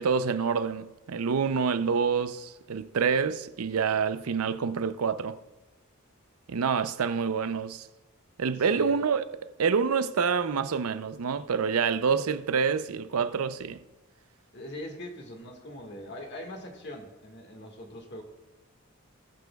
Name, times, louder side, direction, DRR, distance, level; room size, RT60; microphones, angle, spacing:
voice 1, 0.0-5.4 6.5-7.9 8.4-9.2 9.6-13.8, right 6 dB, 90° right, 0.5 m, -27 dB
voice 2, 8.7-9.0 14.5-18.2, left 1 dB, 55° left, 1.7 m, -41 dB
19.0 x 8.2 x 2.3 m
head